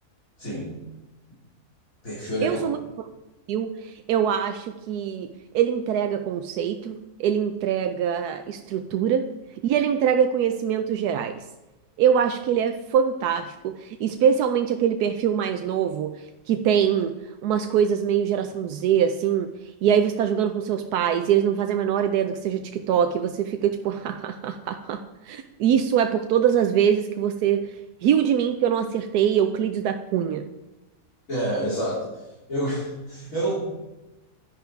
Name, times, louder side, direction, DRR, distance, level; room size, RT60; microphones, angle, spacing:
voice 1, 0.4-0.7 2.0-2.7 31.3-32.0 32.5-33.6, right 1 dB, 60° left, -9 dB, 3.9 m, -28 dB
voice 2, 2.4-3.1 3.5-5.3 5.5-9.2 9.6-11.3 12.0-16.1 16.5-17.1 17.4-19.5 19.8-27.7 28.0-30.4, right 8 dB, 90° right, 7 dB, 1.2 m, -23 dB
10.5 x 10.0 x 4.7 m, 1.0 s
omnidirectional pair, 1.6 m